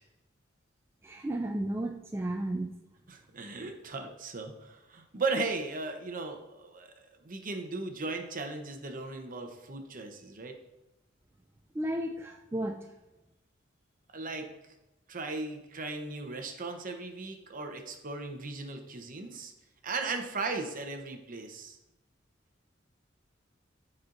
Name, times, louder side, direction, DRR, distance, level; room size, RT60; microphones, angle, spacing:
voice 1, 1.0-2.7 11.7-12.8, right 1 dB, 15° right, 2 dB, 0.3 m, -33 dB
voice 2, 3.1-6.9 7.2-10.5 14.1-14.5 15.1-19.5 19.8-21.8, right 3 dB, 45° right, 5 dB, 0.8 m, -37 dB
13.0 x 4.4 x 2.6 m, 0.98 s
head